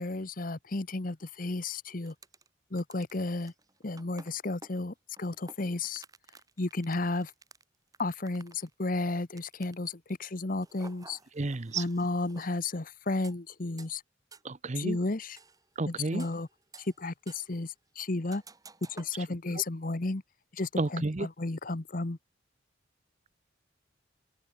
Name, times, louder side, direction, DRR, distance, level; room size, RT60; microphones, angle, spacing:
voice 1, 0.0-2.1 2.7-3.5 3.8-6.0 6.6-7.3 8.0-11.2 11.7-14.0 14.8-15.4 15.9-16.5 17.0-18.4 18.9-20.2 20.5-22.2, left 2 dB, 45° left, 1.0 m, -33 dB
sound 1, 1.6-1.7 2.1-2.5 2.8-10.1 10.6-12.5 13.2-13.4 13.8-13.9 14.3-14.4 15.4-15.7 16.1-17.0 17.3-17.6 18.3-19.1, right 3 dB, 20° right, 4.3 m, -53 dB
voice 2, 11.3-11.9 14.4-15.0 15.8-16.3 19.5-19.6 20.8-21.3, right 2 dB, 35° right, 0.7 m, -31 dB
open air
head